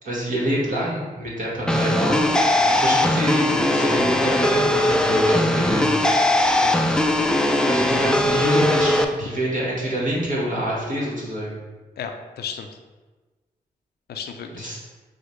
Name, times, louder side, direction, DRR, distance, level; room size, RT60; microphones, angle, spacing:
voice 1, 0.0-2.2 2.7-5.8 7.6-11.6 14.6-14.8, equal, 50° right, -5 dB, 1.4 m, -26 dB
sound 1, 1.7-9.0, left 1 dB, 5° left, 0.4 m, -19 dB
voice 2, 6.6-7.0 12.0-12.7 14.1-14.7, left 6 dB, 75° left, 5 dB, 0.4 m, -34 dB
6.2 x 2.1 x 3.1 m, 1.3 s
supercardioid pair, 45°, 17 cm